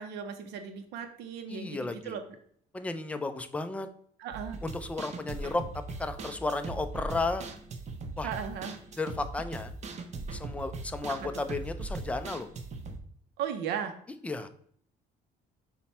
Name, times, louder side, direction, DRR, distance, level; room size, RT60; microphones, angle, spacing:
voice 1, 0.0-2.2 4.2-4.6 8.2-8.8 11.1-11.3 13.4-13.9, right 8 dB, 85° right, 6 dB, 0.5 m, -36 dB
voice 2, 1.5-2.2 2.7-3.9 4.6-7.4 8.2-8.3 9.0-9.7 10.3-12.5 14.2-14.5, left 3 dB, 10° left, 9 dB, 0.3 m, -34 dB
sound 1, 4.3-13.0, right 3 dB, 40° right, 0.6 m, -40 dB
5.5 x 2.2 x 4.1 m, 0.63 s
cardioid pair, 110°, 17 cm